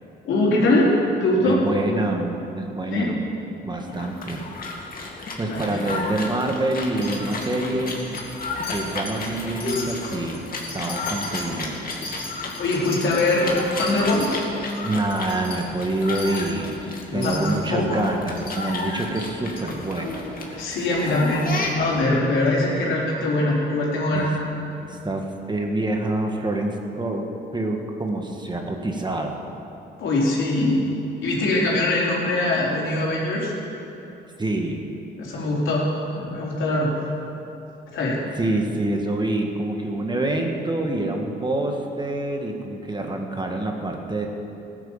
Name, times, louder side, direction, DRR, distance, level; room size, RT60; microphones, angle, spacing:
voice 1, 0.3-0.9 1.2-1.6 2.9-3.1 5.5-5.8 12.6-13.5 13.8-14.4 17.1-17.4 17.7-18.0 20.6-21.5 21.7-24.3 30.0-30.8 31.2-33.5 35.2-35.9 36.2-36.9 37.9-38.2, left 2 dB, 75° left, -4 dB, 4.2 m, -22 dB
voice 2, 1.4-3.2 3.6-4.4 5.4-8.2 8.7-10.4 10.7-11.8 14.8-20.6 24.1-24.6 24.9-25.2 25.5-27.3 27.5-29.4 34.4-34.9 38.4-44.3, right 2 dB, 20° right, 2 dB, 1.8 m, -26 dB
sound 1, 3.9-22.1, left 3 dB, 45° left, 2.4 m, -33 dB
Wind chime, 7.0-7.5 7.9-8.4 8.6-9.3 9.6-14.3 14.7-14.8 15.1-15.6 16.1-16.5 17.2-17.7 18.4-18.6 19.1-19.2 19.6-19.7, left 3 dB, 25° left, 4.3 m, -37 dB
15.5 x 10.5 x 7.3 m, 3.0 s
cardioid pair, 90°, 20 cm